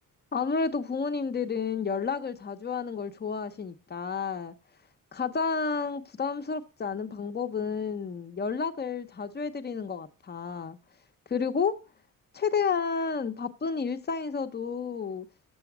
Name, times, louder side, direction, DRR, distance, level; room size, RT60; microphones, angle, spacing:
voice 1, 0.3-4.5 5.1-10.8 11.3-11.7 12.3-15.3, left 5 dB, 30° left, 0.8 m, -31 dB
7.1 x 6.9 x 6.0 m
cardioid pair, 115°, 34 cm